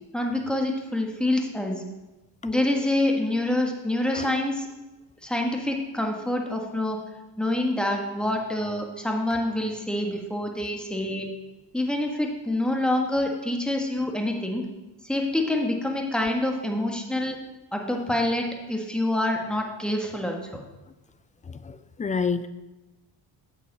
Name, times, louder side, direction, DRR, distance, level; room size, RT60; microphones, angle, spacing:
voice 1, 0.1-1.8 2.4-4.7 5.2-7.0 7.4-11.3 11.7-14.7 15.0-17.4 17.7-20.6, left 1 dB, ahead, 2 dB, 1.5 m, -26 dB
voice 2, 21.5-22.5, left 5 dB, 20° left, 13 dB, 0.4 m, -29 dB
8.1 x 7.1 x 4.1 m, 1.0 s
supercardioid pair, 75°, 44 cm